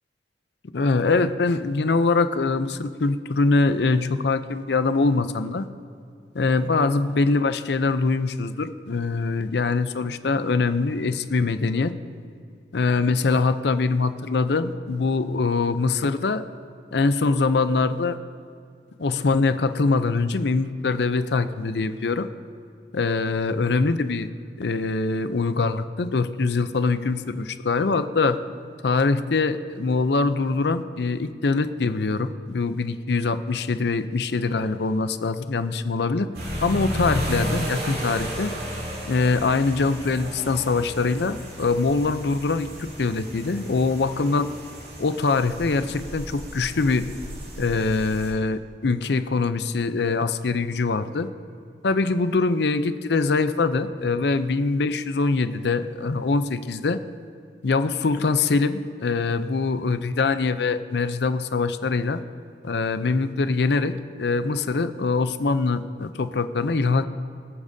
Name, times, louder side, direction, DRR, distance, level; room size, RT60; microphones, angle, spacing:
voice 1, 0.7-5.7 6.3-11.9 12.7-16.4 16.9-18.2 19.0-22.3 22.9-24.3 24.6-28.4 28.8-36.3 36.6-38.5 39.1-44.5 45.0-47.1 47.6-51.3 51.8-57.0 57.6-62.2 62.6-67.0, left 3 dB, 60° left, 12 dB, 0.5 m, -23 dB
sound 1, 36.3-48.3, equal, 55° right, 3.2 m, -34 dB
25.0 x 8.6 x 2.7 m, 2.4 s
head